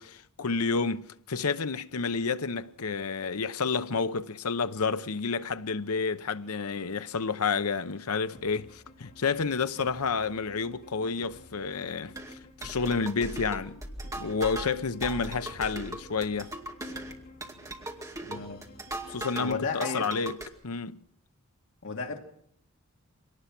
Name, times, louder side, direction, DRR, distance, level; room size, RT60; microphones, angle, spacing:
voice 1, 0.0-12.1 12.6-13.8 14.1-16.5 19.1-20.4 20.6-21.0, left 5 dB, 80° left, 0.8 m, -30 dB
sound 1, 8.3-19.7, left 1 dB, 45° left, 2.9 m, -53 dB
sound 2, 12.1-19.6 19.8-20.5, right 1 dB, 15° right, 2.2 m, -39 dB
voice 2, 18.2-18.6 19.4-20.1 21.8-22.3, left 4 dB, 60° left, 2.3 m, -34 dB
24.5 x 18.5 x 6.0 m
head